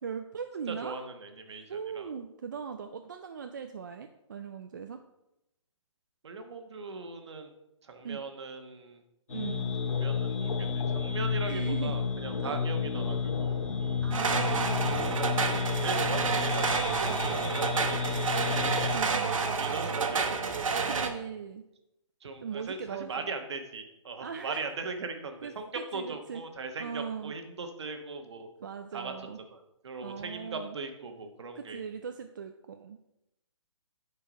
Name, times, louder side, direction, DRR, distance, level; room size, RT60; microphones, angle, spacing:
voice 1, 0.0-1.0 1.7-5.0 8.0-8.2 9.3-9.8 11.5-12.0 12.4-12.6 14.0-14.8 18.9-19.3 20.8-21.6 22.4-23.3 24.2-24.6 25.4-26.4 26.8-27.3 28.6-29.4 30.0-30.8 31.5-33.0, right 6 dB, 35° right, 6 dB, 0.4 m, -39 dB
voice 2, 0.7-2.1 6.2-7.5 7.8-9.0 9.9-14.1 15.8-18.7 19.6-20.7 22.2-28.5 28.9-31.8, right 4 dB, 55° right, 6 dB, 1.3 m, -40 dB
sound 1, 9.3-18.9, left 6 dB, 85° left, 2.2 m, -31 dB
sound 2, 14.1-21.1, right 4 dB, 80° right, 1.1 m, -29 dB
10.0 x 4.6 x 5.1 m, 0.89 s
hypercardioid pair, 170°, 17 cm